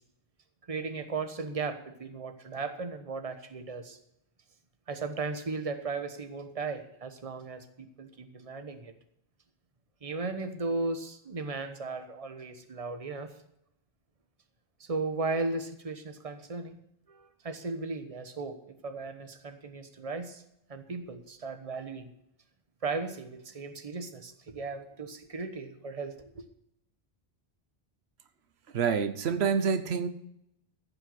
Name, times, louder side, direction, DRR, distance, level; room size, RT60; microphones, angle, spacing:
voice 1, 0.7-4.0 4.9-8.9 10.0-13.3 14.8-16.8 17.1-18.6 18.8-20.4 20.7-22.1 22.8-26.4, right 3 dB, 35° right, 8 dB, 1.2 m, -36 dB
voice 2, 28.7-30.1, right 6 dB, 85° right, 8 dB, 1.1 m, -27 dB
14.5 x 5.7 x 7.7 m, 0.78 s
omnidirectional pair, 1.1 m